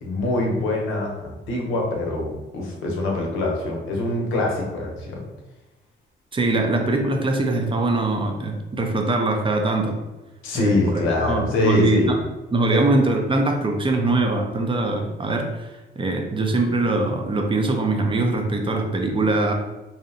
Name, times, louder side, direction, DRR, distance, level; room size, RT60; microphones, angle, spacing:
voice 1, 0.0-5.2 10.4-12.1 12.7-12.8, left 2 dB, 90° left, 0 dB, 0.6 m, -24 dB
voice 2, 6.3-9.9 10.5-12.2 12.5-15.7 16.0-19.5, right 2 dB, 25° right, 3 dB, 0.4 m, -22 dB
2.7 x 2.0 x 2.6 m, 1.1 s
cardioid pair, 90°, 20 cm